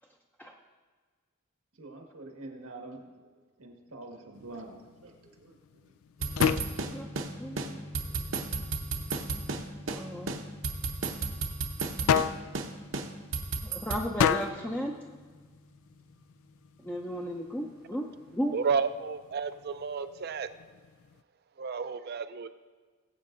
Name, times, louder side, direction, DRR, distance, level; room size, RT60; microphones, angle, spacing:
voice 1, 1.7-5.9 6.4-6.5, right 2 dB, 90° right, 1 dB, 1.7 m, -47 dB
sound 1, 4.3-21.2, left 7 dB, 70° left, 0.4 m, -36 dB
sound 2, 6.2-18.6, left 1 dB, 35° left, 1.1 m, -48 dB
sound 3, 6.2-7.3 7.6-7.7 7.9-9.6 9.9-10.0 10.3-12.3 12.5-12.7 12.9-14.0, right 4 dB, 60° right, 0.8 m, -33 dB
voice 2, 6.9-7.8 9.9-10.4 13.6-14.9 16.8-18.1 18.3-18.5, equal, 10° left, 0 dB, 0.5 m, -34 dB
voice 3, 18.5-20.5 21.6-22.5, right 5 dB, 45° right, 11 dB, 0.4 m, -31 dB
20.0 x 8.2 x 2.6 m, 1.4 s
head